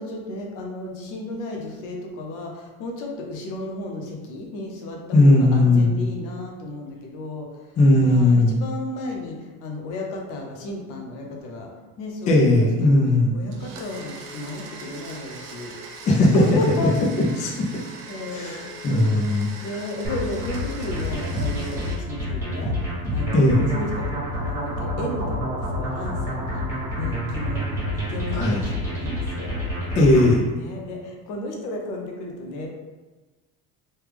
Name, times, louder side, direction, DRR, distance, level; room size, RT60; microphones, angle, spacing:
voice 1, 0.0-7.5 8.0-11.7 12.0-13.0 13.3-15.7 16.2-17.0 18.1-18.7 19.3-29.6 30.5-32.7, left 1 dB, 65° left, 1 dB, 0.7 m, -33 dB
voice 2, 5.1-5.9 7.8-8.6 12.3-13.4 16.1-16.3 17.4-17.7 18.3-19.5 23.3-23.6 28.3-28.6 30.0-30.4, left 2 dB, 25° left, -2 dB, 0.3 m, -17 dB
Domestic sounds home sounds, 13.5-22.0, right 3 dB, 70° right, 0.7 m, -41 dB
sound 1, 20.0-30.4, equal, 10° right, 1.3 m, -28 dB
3.2 x 2.2 x 3.3 m, 1.2 s
cardioid pair, 145°, 33 cm